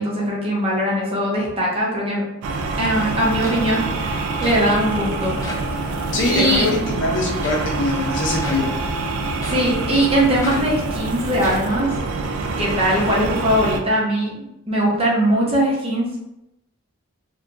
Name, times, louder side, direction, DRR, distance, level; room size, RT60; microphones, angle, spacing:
voice 1, 0.0-2.2 2.8-5.4 5.7-5.8 6.2-6.7 9.5-11.9 12.6-14.3 14.7-16.1, equal, 30° right, -5 dB, 0.7 m, -20 dB
sound 1, 2.4-13.8, right 3 dB, 90° right, 0.3 m, -26 dB
sound 2, 3.1-3.2 3.4-3.9 4.4-4.7 5.4-5.7 6.4-6.7 7.4-7.7 8.4-8.7 9.4-9.7 10.4-10.8 11.4-11.8, equal, 15° left, 0.5 m, -34 dB
voice 2, 6.1-8.7, left 2 dB, 60° left, -1 dB, 0.6 m, -23 dB
2.7 x 2.2 x 2.5 m, 0.86 s
head